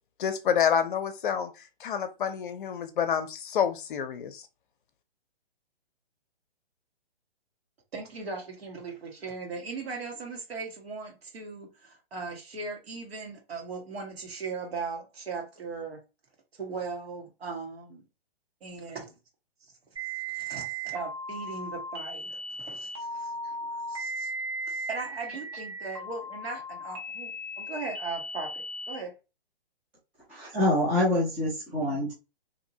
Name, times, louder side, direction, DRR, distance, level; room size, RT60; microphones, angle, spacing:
voice 1, 0.2-1.5 1.8-4.4, left 8 dB, 55° left, 0.6 m, -28 dB
voice 2, 7.9-16.0 16.5-18.0 18.6-19.2 19.6-19.7 20.0-23.3 23.9-24.3 24.7-29.1, right 4 dB, 75° right, 1.5 m, -38 dB
sound 1, 20.0-29.0, right 1 dB, 25° right, 0.8 m, -37 dB
voice 3, 30.3-32.1, left 1 dB, 5° right, 0.4 m, -26 dB
2.8 x 2.8 x 2.7 m
hypercardioid pair, 150°, 31 cm